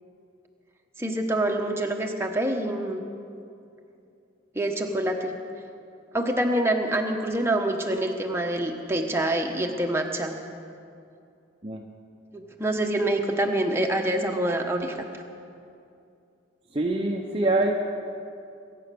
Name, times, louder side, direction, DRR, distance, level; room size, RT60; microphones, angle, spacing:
voice 1, 1.0-3.0 4.5-5.4 6.1-10.4 12.3-15.0, right 1 dB, 15° right, 2 dB, 1.1 m, -26 dB
voice 2, 16.7-17.8, right 2 dB, 30° right, 1 dB, 0.8 m, -24 dB
22.5 x 9.3 x 6.9 m, 2.5 s
head